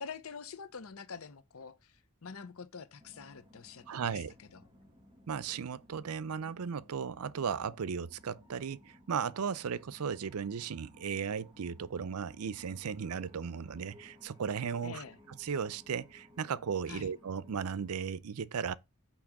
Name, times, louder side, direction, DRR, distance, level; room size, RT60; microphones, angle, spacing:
voice 1, 0.0-4.6 14.8-15.2 16.9-17.1, left 5 dB, 75° left, 0.7 m, -46 dB
sound 1, 3.0-17.9, left 1 dB, 20° right, 1.7 m, -60 dB
voice 2, 3.9-4.3 5.3-15.0 15.4-18.8, right 6 dB, 85° right, 0.5 m, -36 dB
8.7 x 3.0 x 5.9 m
head